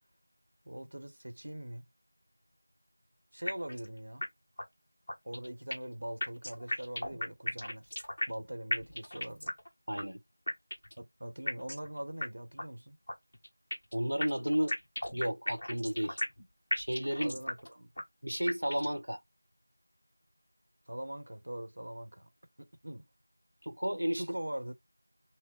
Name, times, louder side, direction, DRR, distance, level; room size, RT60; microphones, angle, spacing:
voice 1, 0.7-1.8 3.3-4.2 5.2-7.9 8.3-9.5 11.0-13.0 17.2-17.9 20.9-22.3 22.6-23.1 24.2-24.7, right 1 dB, 50° right, 1.0 m, -42 dB
sound 1, 3.5-3.9 4.2-4.3 4.6-4.7 5.1-5.9 6.2-8.4 8.7-9.7 10.0-10.1 10.5-11.0 11.5-11.9 12.2-12.3 12.6-12.7 13.1-13.9 14.2-16.4 16.7-17.7 18.0-18.1 18.5-19.0, left 1 dB, 25° left, 1.3 m, -35 dB
voice 2, 9.9-10.2 13.9-14.8 15.1-16.2 16.7-17.4 18.2-19.2 23.6-24.2, equal, 75° right, 1.0 m, -32 dB
6.3 x 2.1 x 3.8 m
figure-of-eight pair, 175°, 0 cm